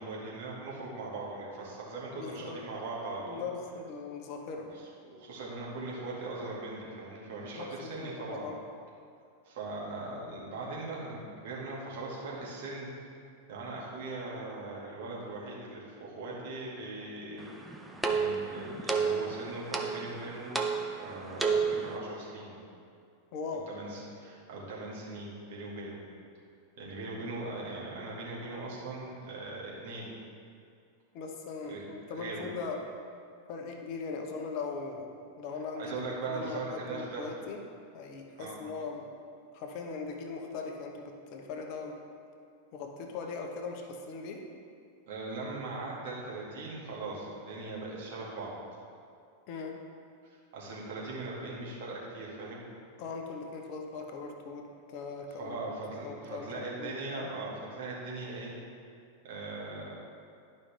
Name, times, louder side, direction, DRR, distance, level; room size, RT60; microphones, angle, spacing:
voice 1, 0.0-3.4 4.7-8.5 9.4-12.9 13.5-17.7 18.1-20.6 21.0-22.5 23.7-26.0 26.8-30.1 31.6-31.8 32.1-32.4 35.8-37.3 38.4-38.6 45.1-48.5 50.5-52.6 55.4-58.5 59.2-59.9, right 2 dB, 55° right, -5 dB, 2.0 m, -40 dB
voice 2, 2.1-2.6 3.2-4.7 7.6-8.6 23.3-23.7 31.1-32.8 33.5-35.1 35.4-37.6 37.9-39.1 39.5-42.0 42.7-44.4 49.5-49.8 53.0-55.6 56.0-57.3, left 4 dB, 45° left, 3 dB, 1.0 m, -40 dB
sound 1, 17.4-22.0, right 5 dB, 10° right, 0.6 m, -32 dB
11.0 x 5.4 x 3.4 m, 2.4 s
figure-of-eight pair, 90°, 0 cm